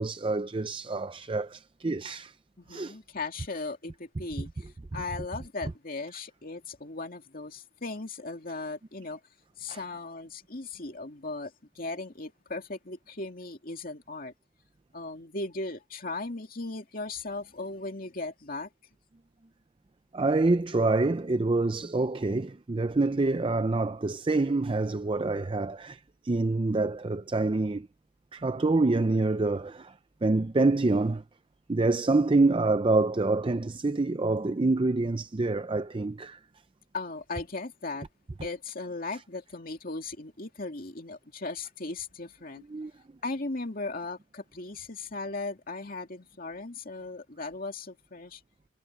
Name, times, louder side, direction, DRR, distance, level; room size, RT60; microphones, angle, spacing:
voice 1, 0.0-2.3 2.7-3.0 9.7-9.8 20.1-27.9 28.3-29.9 30.2-31.2 31.7-36.4 42.7-42.9, right 2 dB, 25° right, 0.5 m, -26 dB
voice 2, 2.6-9.2 9.6-14.3 14.9-18.7 32.2-32.3 36.9-38.1 38.4-42.6 43.2-48.4, left 3 dB, 45° left, 2.4 m, -37 dB
head